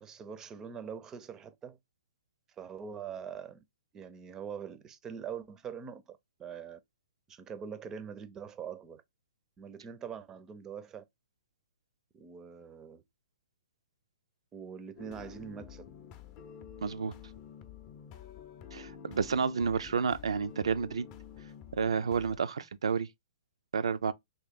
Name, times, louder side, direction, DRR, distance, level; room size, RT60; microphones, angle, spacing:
voice 1, 0.0-1.8 2.6-3.6 3.9-6.8 7.3-9.0 9.6-11.0 12.1-13.0 14.5-15.9, right 7 dB, 20° right, 0.5 m, -43 dB
sound 1, 15.0-22.4, left 8 dB, 30° left, 0.5 m, -49 dB
voice 2, 16.8-17.1 18.7-21.1 21.8-23.1 23.7-24.1, right 6 dB, 80° right, 0.4 m, -30 dB
3.1 x 2.9 x 3.5 m
hypercardioid pair, 135°, 3 cm